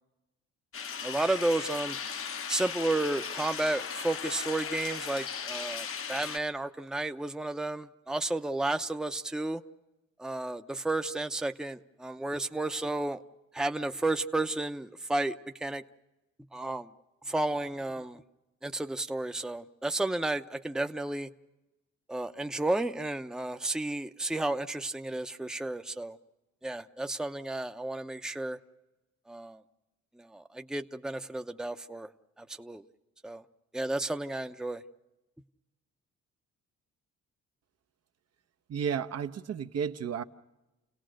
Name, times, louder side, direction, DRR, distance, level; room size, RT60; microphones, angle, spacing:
sound 1, 0.7-6.4, left 6 dB, 45° left, 1.0 m, -37 dB
voice 1, 1.0-2.0 2.5-9.6 10.2-13.2 13.5-15.8 16.5-16.9 17.3-18.2 18.6-21.3 22.1-26.2 26.6-28.6 29.3-29.6 30.2-32.1 32.4-32.9 33.2-33.4 33.7-34.8, right 2 dB, ahead, 0.8 m, -32 dB
voice 2, 38.7-40.2, right 7 dB, 55° right, 1.0 m, -32 dB
29.5 x 17.5 x 6.4 m
cardioid pair, 90°, 30 cm